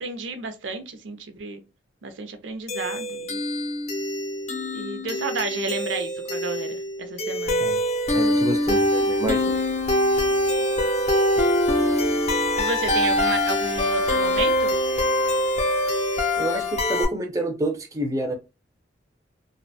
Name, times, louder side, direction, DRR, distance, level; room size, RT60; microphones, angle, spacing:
voice 1, 0.0-1.6 2.0-3.4 4.7-7.7 12.6-14.8, right 3 dB, 85° right, 0.5 m, -32 dB
sound 1, 2.7-17.1, left 1 dB, 40° left, 0.5 m, -23 dB
voice 2, 8.1-9.6 16.4-18.3, right 1 dB, 20° right, 0.4 m, -28 dB
2.4 x 2.1 x 2.6 m
head